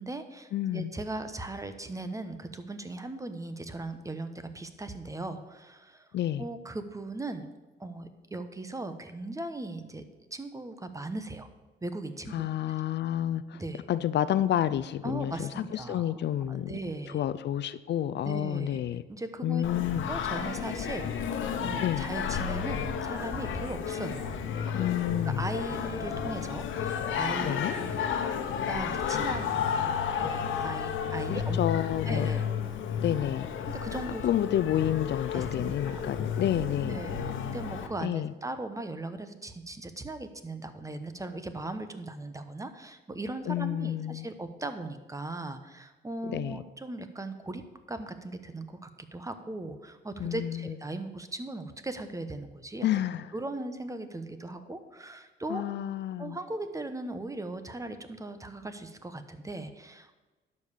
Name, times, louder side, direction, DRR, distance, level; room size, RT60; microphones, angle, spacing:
voice 1, 0.0-6.1 6.4-7.5 7.8-10.0 10.3-11.5 11.8-12.4 13.5-13.8 15.0-16.1 16.5-17.2 18.2-18.8 19.1-19.6 20.1-24.3 24.8-24.9 25.3-28.0 28.7-29.9 30.2-32.5 33.7-34.6 35.3-36.1 36.8-52.9 53.3-55.6 56.2-60.2, right 2 dB, 15° right, 9 dB, 1.1 m, -38 dB
voice 2, 0.5-0.9 6.1-6.5 12.3-13.6 13.9-16.7 17.1-19.0 19.4-20.0 21.8-22.1 24.7-25.5 27.4-27.8 31.3-32.3 33.0-33.5 34.2-37.6 38.0-38.3 43.5-44.3 46.3-46.6 50.2-50.7 52.8-53.3 55.5-56.4, left 11 dB, 60° left, 15 dB, 0.5 m, -30 dB
Singing, 19.6-37.9, left 7 dB, 75° left, 1.1 m, -32 dB
11.5 x 5.5 x 6.6 m, 1.2 s
cardioid pair, 90°, 20 cm